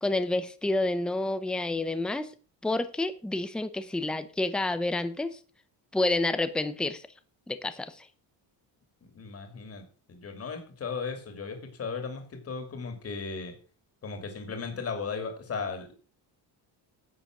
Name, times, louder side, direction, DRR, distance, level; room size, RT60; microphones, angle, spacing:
voice 1, 0.0-2.3 2.6-5.4 5.9-7.0 7.5-8.1, left 2 dB, ahead, 11 dB, 0.6 m, -29 dB
voice 2, 9.0-13.5 14.0-15.9, left 5 dB, 35° left, 5 dB, 2.6 m, -36 dB
10.5 x 7.8 x 6.0 m, 0.38 s
cardioid pair, 170°, 42 cm